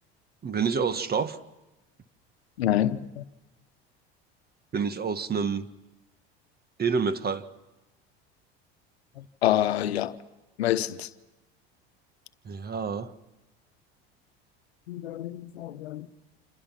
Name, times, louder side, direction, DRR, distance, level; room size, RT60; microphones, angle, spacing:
voice 1, 0.4-1.4 4.7-5.7 6.8-7.5 12.4-13.1, right 5 dB, 30° right, 1.6 m, -28 dB
voice 2, 2.6-3.2 9.2-10.2 10.6-11.1 14.9-16.1, left 12 dB, 90° left, 1.1 m, -27 dB
28.5 x 28.0 x 5.9 m
hypercardioid pair, 80°, 31 cm